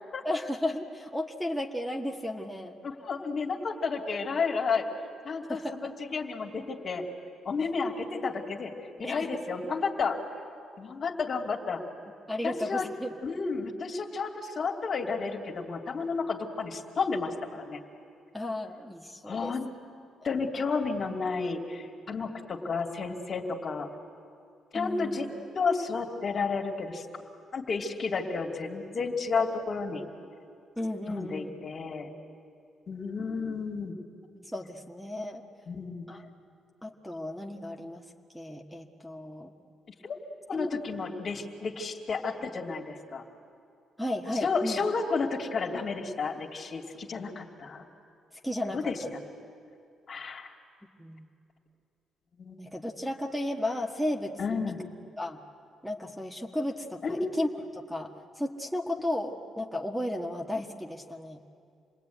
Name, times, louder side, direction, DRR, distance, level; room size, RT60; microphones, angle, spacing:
voice 1, 0.2-2.7 5.5-5.9 9.0-9.4 12.3-13.1 18.3-19.5 24.7-25.2 30.8-31.5 34.3-35.4 36.1-36.3 36.8-38.0 38.3-39.5 40.6-40.7 44.0-44.8 48.4-49.1 51.0-51.2 52.6-54.7 55.2-55.4 55.8-58.1 58.4-61.4, left 1 dB, ahead, 2 dB, 1.7 m, -34 dB
voice 2, 2.8-4.9 5.2-7.0 7.4-8.7 9.0-10.2 10.8-11.8 12.4-12.9 13.2-17.8 19.2-19.7 20.2-23.9 24.7-25.3 25.5-27.1 27.5-30.1 31.1-32.1 32.9-34.0 35.7-36.1 40.0-40.2 40.5-43.2 44.4-47.8 48.7-49.0 50.1-50.5 52.4-52.6 54.4-54.8 57.0-57.4, left 4 dB, 50° left, 1 dB, 2.6 m, -31 dB
28.0 x 20.5 x 9.3 m, 2.4 s
cardioid pair, 90°, 0 cm